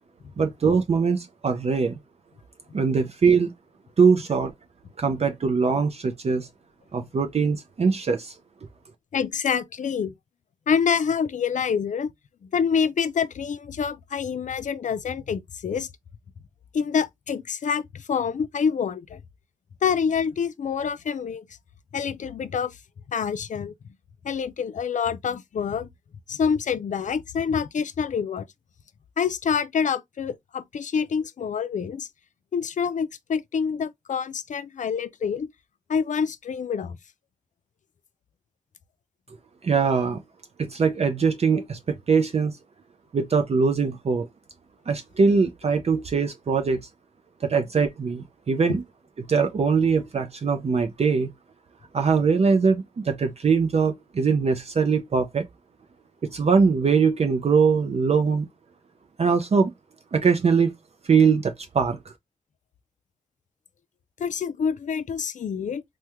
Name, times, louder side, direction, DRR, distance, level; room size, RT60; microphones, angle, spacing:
voice 1, 0.4-2.0 2.7-3.5 4.0-4.5 5.0-6.5 6.9-8.3 39.6-40.2 40.6-42.5 43.1-44.3 44.9-46.8 47.4-48.8 49.3-51.3 51.9-55.5 56.2-58.5 59.2-59.7 60.1-60.7 61.1-62.0, right 5 dB, 50° right, 0.4 m, -22 dB
voice 2, 9.1-10.1 10.7-12.1 12.5-15.9 16.7-19.2 19.8-21.5 21.9-22.8 23.1-23.7 24.2-25.9 26.3-28.5 29.2-32.1 32.5-35.5 35.9-37.0 64.2-65.8, left 6 dB, 65° left, 0.4 m, -26 dB
3.4 x 2.2 x 2.9 m
wide cardioid pair, 135°, 14 cm